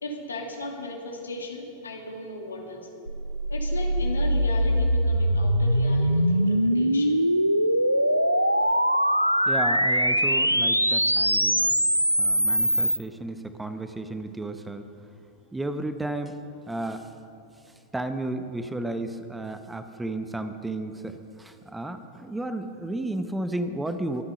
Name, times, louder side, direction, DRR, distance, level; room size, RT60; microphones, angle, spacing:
voice 1, 0.0-2.9 3.5-7.2, left 2 dB, 75° left, 1 dB, 2.4 m, -36 dB
sound 1, 3.1-13.0, equal, 90° right, 0.5 m, -22 dB
voice 2, 9.5-11.8 12.2-14.8 15.5-16.4 16.7-17.1 17.9-24.2, right 2 dB, 5° right, 9 dB, 0.8 m, -33 dB
23.5 x 9.9 x 5.4 m, 2.6 s
figure-of-eight pair, 90°, 0 cm